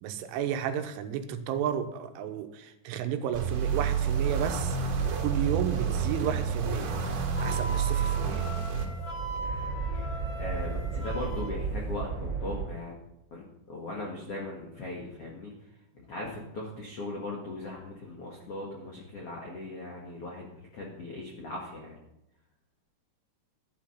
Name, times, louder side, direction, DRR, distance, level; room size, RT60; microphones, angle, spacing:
voice 1, 0.0-4.8 5.2-7.0 7.4-8.5, right 8 dB, 80° right, 8 dB, 3.3 m, -32 dB
sound 1, 3.3-8.9, right 7 dB, 60° right, 3.4 m, -29 dB
sound 2, 4.2-12.7, right 3 dB, 30° right, 2.5 m, -36 dB
Wind instrument woodwind instrument, 7.3-11.5, right 1 dB, 35° left, 2.0 m, -39 dB
voice 2, 10.4-12.9 13.3-15.5 15.9-22.0, left 2 dB, 85° left, -2 dB, 1.3 m, -39 dB
11.5 x 11.0 x 5.7 m, 0.86 s
omnidirectional pair, 5.8 m